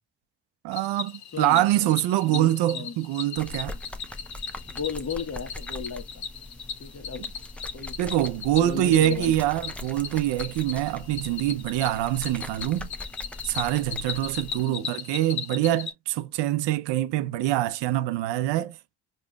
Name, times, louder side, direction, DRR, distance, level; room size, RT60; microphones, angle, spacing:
voice 1, 0.6-3.8 8.0-12.9 13.4-18.9, right 14 dB, 80° right, 0.6 m, -25 dB
Cricket, 0.7-15.9, left 6 dB, 60° left, 1.1 m, -38 dB
voice 2, 1.3-2.0 2.2-3.0 4.7-6.2 6.8-7.2 7.7-8.0 8.6-9.4 14.6-14.9, left 6 dB, 35° left, 1.2 m, -35 dB
sound 1, 3.4-14.6, left 1 dB, 5° left, 0.7 m, -41 dB
5.1 x 2.6 x 2.3 m
supercardioid pair, 50°, 42 cm